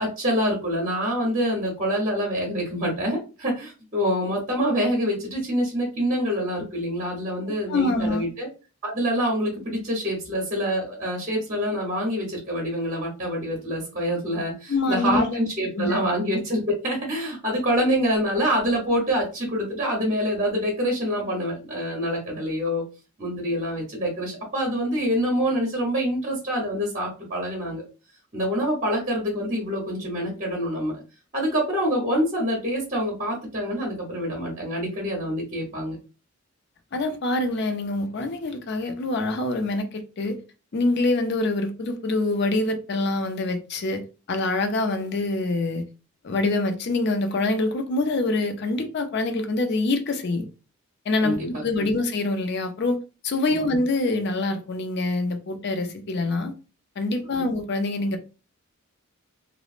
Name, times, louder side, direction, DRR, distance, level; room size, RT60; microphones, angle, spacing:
voice 1, 0.0-8.5 8.8-22.8 23.2-27.9 28.3-31.0 31.3-36.0 51.2-51.9 53.6-53.7 57.3-57.5, equal, 35° right, 0.8 m, -26 dB
voice 2, 7.7-8.3 14.7-15.4 15.7-16.0 36.9-40.4 40.7-45.9 46.2-50.5 51.1-53.0 53.2-56.5 57.0-58.2, left 2 dB, 50° left, 0.4 m, -25 dB
3.0 x 2.0 x 2.4 m
head